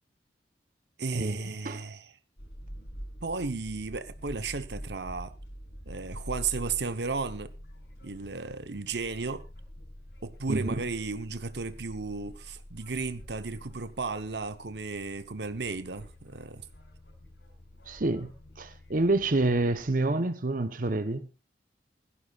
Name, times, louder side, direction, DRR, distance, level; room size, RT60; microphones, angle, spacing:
voice 1, 1.0-2.1 3.2-5.3 5.9-7.5 8.0-9.4 10.2-16.7, right 4 dB, 70° right, 1.0 m, -34 dB
sound 1, 2.4-19.9, equal, 85° left, 6.6 m, -46 dB
voice 2, 10.5-10.8 17.9-21.3, right 2 dB, 50° right, 0.9 m, -28 dB
17.0 x 15.5 x 2.5 m
head